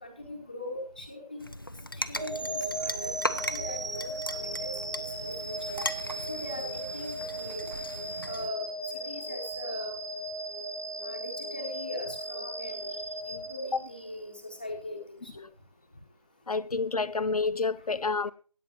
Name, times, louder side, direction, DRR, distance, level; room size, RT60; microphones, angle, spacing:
voice 1, 0.0-1.5 1.9-5.8 6.3-7.7 8.2-10.0 11.0-13.0 13.3-15.4, left 1 dB, 15° left, 0.9 m, -41 dB
sound 1, 1.4-8.5, left 1 dB, 35° left, 0.4 m, -38 dB
sound 2, 2.2-14.3, right 2 dB, 50° right, 2.4 m, -36 dB
voice 2, 16.5-18.3, left 4 dB, 80° left, 0.7 m, -29 dB
17.0 x 8.5 x 2.9 m
figure-of-eight pair, 175°, 19 cm